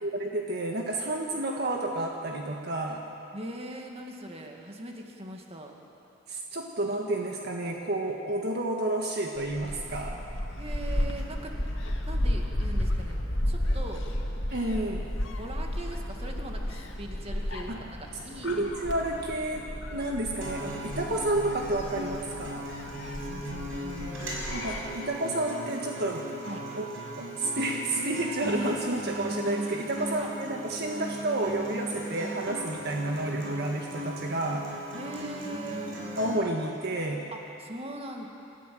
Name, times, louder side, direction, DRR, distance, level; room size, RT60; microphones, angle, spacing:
voice 1, 0.0-3.0 6.3-10.2 14.5-15.1 17.7-17.8 18.4-22.6 24.5-26.3 26.8-26.9 27.2-34.7 36.2-37.2, right 2 dB, 55° right, 1 dB, 1.6 m, -30 dB
voice 2, 3.3-5.8 10.6-11.6 12.1-14.1 15.4-18.6 21.0-21.2 23.0-24.7 26.4-26.6 30.0-30.3 34.9-36.0 37.3-38.3, right 1 dB, 30° right, 1 dB, 2.1 m, -41 dB
Gull seagull, 9.4-24.8, left 1 dB, 70° left, 2.3 m, -33 dB
Acoustic guitar, 20.4-36.4, right 1 dB, 85° right, 5.7 m, -37 dB
28.0 x 14.0 x 7.8 m, 2.8 s
head